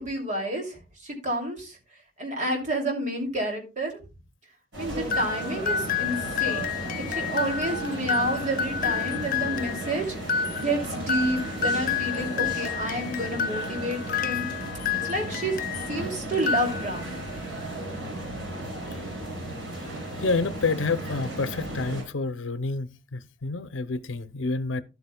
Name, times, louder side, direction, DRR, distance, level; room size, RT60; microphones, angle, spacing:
voice 1, 0.0-1.8 2.2-4.0 4.8-14.6 15.0-15.6 15.9-17.2, right 1 dB, 40° right, 2.7 m, -30 dB
sound 1, 4.7-22.0, right 1 dB, 75° right, 5.3 m, -35 dB
sound 2, 5.1-16.0 16.3-17.2, left 7 dB, 45° left, 0.4 m, -30 dB
voice 2, 20.2-24.8, left 3 dB, 90° left, 0.7 m, -28 dB
12.5 x 8.1 x 2.2 m
head